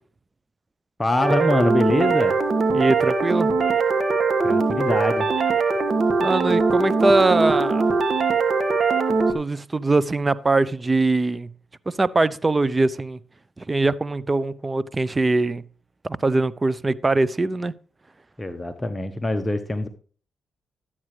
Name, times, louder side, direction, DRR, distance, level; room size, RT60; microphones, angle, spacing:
voice 1, 1.0-2.4 4.4-5.3 18.4-19.9, left 1 dB, 20° left, 1.1 m, -24 dB
sound 1, 1.2-9.3, right 4 dB, 50° right, 1.8 m, -21 dB
voice 2, 2.7-3.5 6.2-7.9 9.3-11.5 12.0-13.2 13.6-15.6 16.0-17.7, right 2 dB, 25° right, 0.6 m, -22 dB
12.5 x 8.7 x 3.3 m
supercardioid pair, 60°, 0 cm